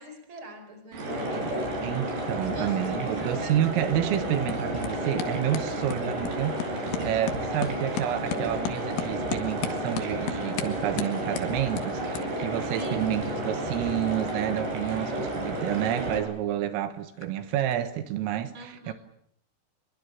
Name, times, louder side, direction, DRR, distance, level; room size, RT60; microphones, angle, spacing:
voice 1, 0.0-3.7 7.5-7.8 12.7-13.3 18.5-18.9, right 1 dB, 25° right, 5.1 m, -44 dB
sound 1, 0.9-16.2, right 1 dB, 55° right, 7.8 m, -31 dB
voice 2, 1.8-6.6 7.0-18.9, right 12 dB, 85° right, 4.1 m, -29 dB
sound 2, 2.4-18.3, left 9 dB, 75° left, 4.4 m, -40 dB
26.5 x 23.5 x 8.5 m
omnidirectional pair, 5.9 m